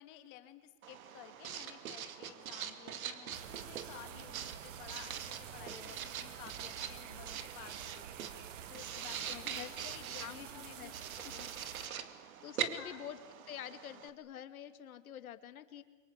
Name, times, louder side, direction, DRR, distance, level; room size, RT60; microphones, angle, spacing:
voice 1, 0.0-8.3 8.7-11.0 11.2-11.5 12.8-13.0, left 14 dB, 25° left, 9 dB, 1.7 m, -54 dB
Writing, 0.8-14.1, right 8 dB, 75° right, 2.4 m, -44 dB
sound 1, 3.3-11.9, right 9 dB, 60° right, 2.0 m, -49 dB
voice 2, 5.6-6.0 9.3-9.9 10.2-10.9 11.3-11.5 12.4-13.2 13.5-15.8, left 10 dB, 85° left, 10 dB, 2.4 m, -47 dB
28.5 x 24.5 x 8.4 m, 1.3 s
supercardioid pair, 175°, 42 cm